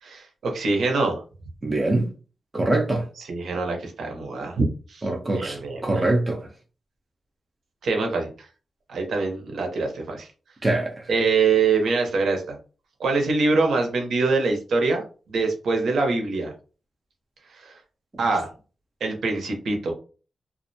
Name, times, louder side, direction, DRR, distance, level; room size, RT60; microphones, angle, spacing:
voice 1, 0.0-1.2 3.2-5.1 5.3-6.1 7.8-8.3 8.9-10.3 11.1-12.6 13.0-16.5 17.5-17.8 18.2-18.5 19.0-19.9, right 3 dB, 75° right, 0.7 m, -24 dB
voice 2, 1.6-2.1 2.5-3.1 5.0-6.5 10.6-11.1, right 2 dB, 20° right, 0.4 m, -23 dB
2.4 x 2.1 x 2.6 m
wide cardioid pair, 175°, 0 cm